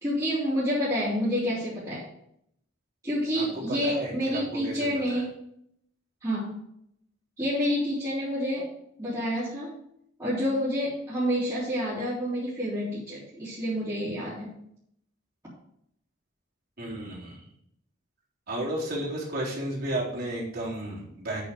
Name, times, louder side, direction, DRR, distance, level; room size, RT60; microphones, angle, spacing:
voice 1, 0.0-2.0 3.0-5.3 6.2-6.6 7.4-8.7 9.0-9.7 10.2-14.5, equal, 20° right, -11 dB, 3.6 m, -28 dB
voice 2, 3.3-5.3 16.8-17.5 18.5-21.4, right 1 dB, 50° right, -5 dB, 3.8 m, -33 dB
8.3 x 7.0 x 4.9 m, 0.71 s
head